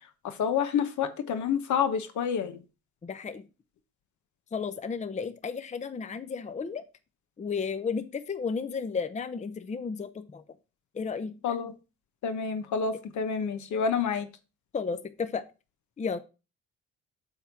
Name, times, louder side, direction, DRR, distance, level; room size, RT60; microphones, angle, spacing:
voice 1, 0.2-2.6 11.4-11.7 12.2-14.3, left 7 dB, 70° left, 10 dB, 1.1 m, -28 dB
voice 2, 3.0-3.4 4.5-6.8 7.4-10.4 10.9-11.3 14.7-15.4 16.0-16.2, left 5 dB, 25° left, 12 dB, 0.6 m, -33 dB
8.0 x 3.6 x 5.9 m, 0.31 s
cardioid pair, 90°, 30 cm